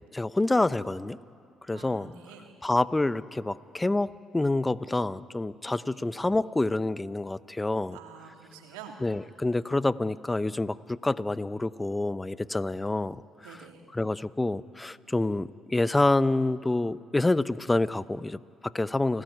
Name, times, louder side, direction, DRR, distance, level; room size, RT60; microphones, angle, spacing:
voice 1, 0.1-1.2 1.7-2.1 2.6-8.0 9.0-13.6 13.9-19.2, left 2 dB, 15° left, 16 dB, 0.8 m, -27 dB
voice 2, 1.7-2.5 5.8-6.0 7.9-9.0 13.4-13.8, right 7 dB, 85° right, 2 dB, 3.1 m, -47 dB
30.0 x 18.0 x 9.6 m, 2.3 s
hypercardioid pair, 55°, 0 cm